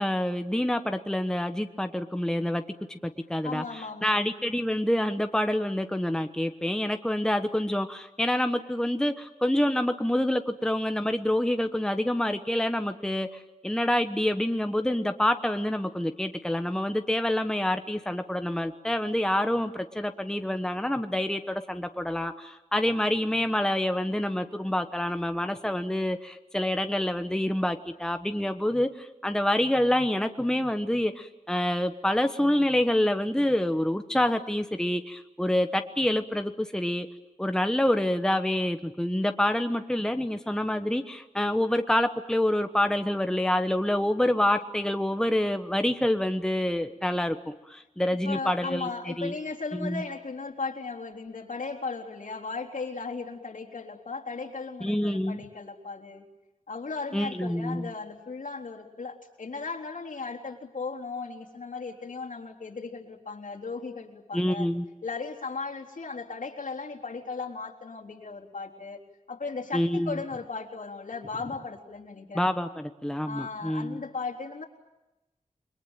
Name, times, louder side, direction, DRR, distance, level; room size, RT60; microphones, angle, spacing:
voice 1, 0.0-2.6 2.9-37.1 37.4-49.3 49.7-50.0 54.8-55.4 57.1-57.9 64.3-64.9 69.7-70.2 72.3-74.0, left 1 dB, 5° left, 7 dB, 1.2 m, -27 dB
voice 2, 3.4-4.2 48.2-56.2 56.7-64.7 65.0-69.0 69.3-72.4 73.3-74.6, left 4 dB, 70° left, 0 dB, 3.7 m, -36 dB
29.5 x 22.5 x 9.1 m, 0.99 s
wide cardioid pair, 105°, 14 cm